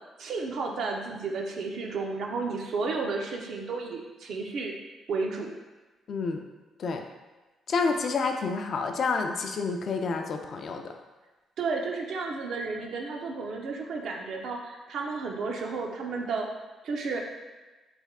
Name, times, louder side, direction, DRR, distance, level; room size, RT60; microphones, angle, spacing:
voice 1, 0.2-4.8 5.1-5.5 11.6-16.5 16.8-17.2, right 4 dB, 70° right, 1 dB, 0.5 m, -32 dB
voice 2, 6.1-6.4 6.8-7.0 7.7-10.9, left 4 dB, 55° left, 4 dB, 0.4 m, -29 dB
3.4 x 2.3 x 3.5 m, 1.2 s
cardioid pair, 90°, 0 cm